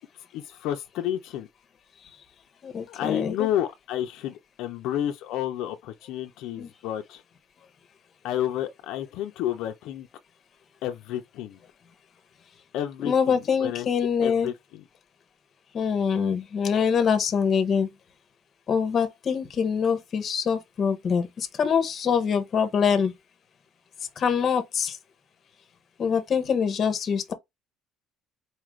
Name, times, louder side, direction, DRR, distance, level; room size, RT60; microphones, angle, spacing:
voice 1, 0.3-1.5 2.9-7.2 8.2-10.1 10.8-11.6 12.7-13.9 14.2-14.8, left 11 dB, 65° left, 0.5 m, -30 dB
voice 2, 2.6-3.5 6.6-6.7 13.0-14.5 15.7-17.9 18.7-23.1 24.2-25.0 26.0-27.3, left 6 dB, 30° left, 0.7 m, -24 dB
4.3 x 2.4 x 3.0 m
cardioid pair, 170°, 0 cm